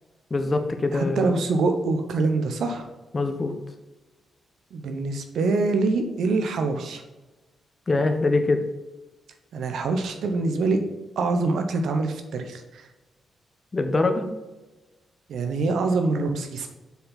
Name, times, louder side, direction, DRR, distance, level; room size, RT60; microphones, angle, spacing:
voice 1, 0.3-1.3 3.1-3.5 7.9-8.6 13.7-14.2, left 2 dB, 40° left, 7 dB, 1.0 m, -23 dB
voice 2, 0.9-2.9 4.7-7.0 9.5-10.8 11.2-12.9 15.3-16.7, right 3 dB, 75° right, 6 dB, 0.9 m, -25 dB
7.0 x 4.5 x 4.0 m, 1.1 s
supercardioid pair, 50°, 0 cm